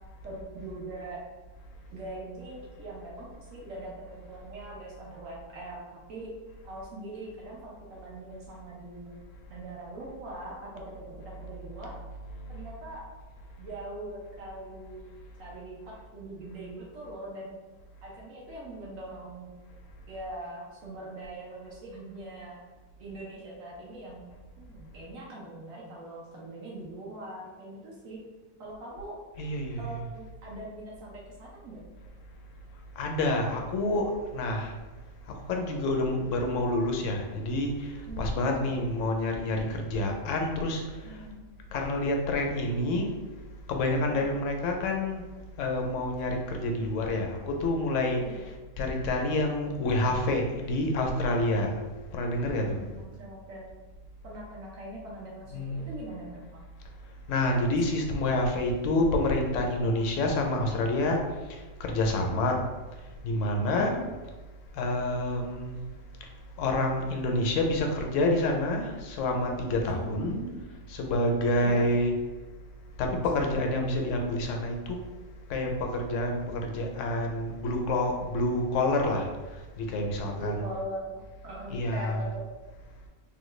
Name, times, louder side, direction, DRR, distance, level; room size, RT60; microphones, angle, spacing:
voice 1, 0.2-1.2 1.9-5.8 6.1-6.3 6.6-9.2 9.5-11.9 12.5-13.0 13.6-15.8 16.1-17.6 18.0-19.5 20.1-22.6 23.0-24.2 24.6-28.2 28.6-29.2 29.8-31.8 38.1-38.8 41.0-41.5 48.2-48.4 52.6-53.7 54.2-56.5 63.6-64.0 69.8-70.6 71.6-71.8 80.3-82.4, right 1 dB, 85° right, -4 dB, 1.2 m, -42 dB
voice 2, 29.4-30.0 33.0-34.7 35.3-40.8 41.7-43.1 43.7-45.2 45.6-48.4 48.8-51.7 52.1-52.8 55.5-55.8 57.3-61.2 61.5-62.6 63.2-64.0 64.7-65.7 66.6-70.4 70.9-72.2 73.0-75.0 75.5-79.3 79.8-80.6 81.7-82.3, left 1 dB, 75° left, 2 dB, 0.9 m, -28 dB
3.5 x 2.2 x 3.1 m, 1.2 s
omnidirectional pair, 1.4 m